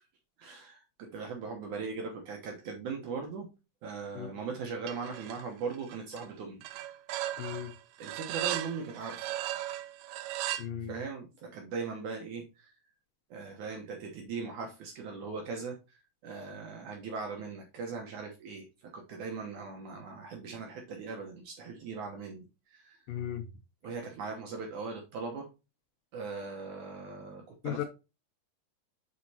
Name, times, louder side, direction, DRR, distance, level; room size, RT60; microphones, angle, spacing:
voice 1, 0.4-3.5 3.8-6.6 8.0-9.3 10.9-12.7 13.3-15.8 16.2-22.5 22.7-23.0 23.8-25.5 26.1-27.8, right 4 dB, 70° right, 1 dB, 2.2 m, -39 dB
sound 1, 4.9-5.5 5.7-6.3 6.6-10.7, right 14 dB, 85° right, 2.2 m, -37 dB
voice 2, 7.4-7.7 10.6-10.9 23.1-23.5 27.6-27.9, left 10 dB, 80° left, 5 dB, 2.5 m, -36 dB
7.3 x 5.0 x 2.7 m, 0.28 s
omnidirectional pair, 4.1 m